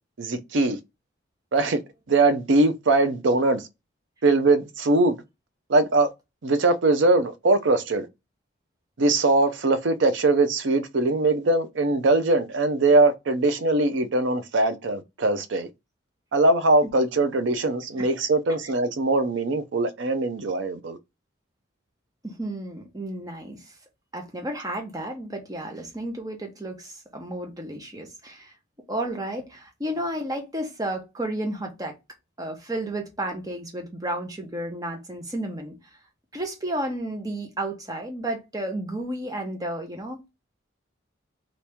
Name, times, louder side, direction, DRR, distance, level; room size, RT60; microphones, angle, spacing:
voice 1, 0.2-0.8 1.5-1.8 2.1-3.7 4.2-5.2 5.7-6.1 6.4-8.1 9.0-15.7 16.3-21.0, right 2 dB, 70° right, 0.5 m, -21 dB
voice 2, 22.2-23.7 24.1-28.5 28.9-31.9 32.4-35.7 36.3-40.3, right 1 dB, 20° right, 0.8 m, -32 dB
2.9 x 2.6 x 3.3 m
head